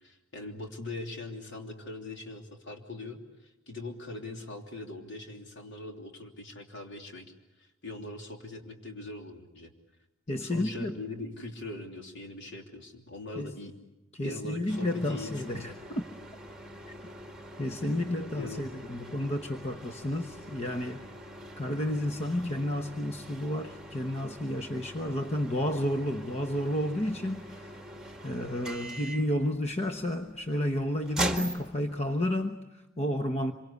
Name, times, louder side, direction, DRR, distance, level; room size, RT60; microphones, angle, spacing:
voice 1, 0.0-7.3 7.6-9.7 10.4-13.7 14.2-15.7 18.4-18.6, left 2 dB, 60° left, 3 dB, 3.2 m, -41 dB
voice 2, 10.3-11.0 13.4-13.5 14.1-16.0 17.6-21.0 21.6-27.8 28.2-33.5, left 1 dB, 35° left, 6 dB, 1.0 m, -31 dB
sound 1, 14.7-32.4, right 1 dB, 5° right, 2.0 m, -42 dB
26.0 x 24.5 x 8.3 m, 0.98 s
head